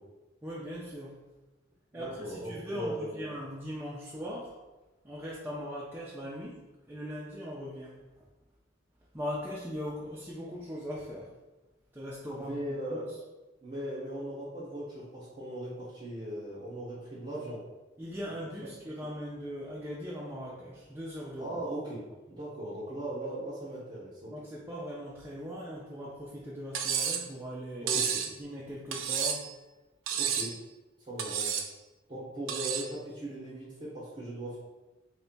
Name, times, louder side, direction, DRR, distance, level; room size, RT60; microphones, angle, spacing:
voice 1, 0.4-1.2 1.9-4.6 5.0-8.0 9.1-11.3 11.9-13.0 18.0-21.6 24.3-28.0 28.4-29.5, equal, 10° right, -6 dB, 0.4 m, -40 dB
voice 2, 1.9-3.2 12.3-13.1 13.6-17.6 18.6-18.7 21.4-22.0 22.3-24.3 27.8-28.2 30.2-30.5 31.0-31.6 32.1-34.6, right 1 dB, 25° right, -9 dB, 0.8 m, -38 dB
Cutlery silverware, 26.7-27.3 27.9-28.3 28.9-29.5 30.1-30.6 31.2-31.7 32.5-32.9, right 8 dB, 80° right, 0.4 m, -31 dB
3.2 x 2.2 x 3.9 m, 1.1 s
head